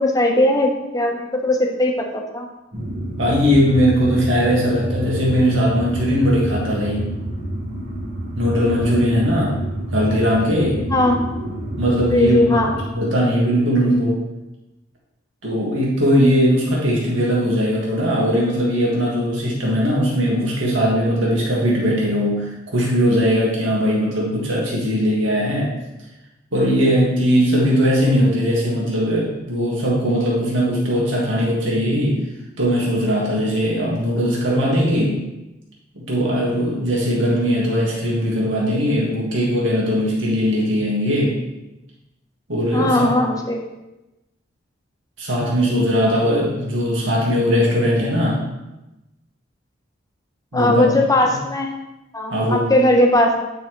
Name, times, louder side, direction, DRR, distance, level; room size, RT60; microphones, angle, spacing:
voice 1, 0.0-2.5 10.9-11.3 12.1-12.7 42.7-43.7 50.5-51.8 52.1-53.5, left 1 dB, 20° left, 2 dB, 0.9 m, -18 dB
sound 1, 2.7-12.8, right 1 dB, 50° right, 1.9 m, -28 dB
voice 2, 3.2-7.0 8.4-9.6 9.9-10.8 11.8-12.4 12.9-14.2 15.4-25.7 26.5-32.2 32.6-35.2 35.9-41.3 42.5-43.1 45.2-48.4 50.5-50.9 52.3-52.7, equal, 80° right, -5 dB, 2.0 m, -19 dB
8.9 x 5.5 x 3.1 m, 0.98 s
head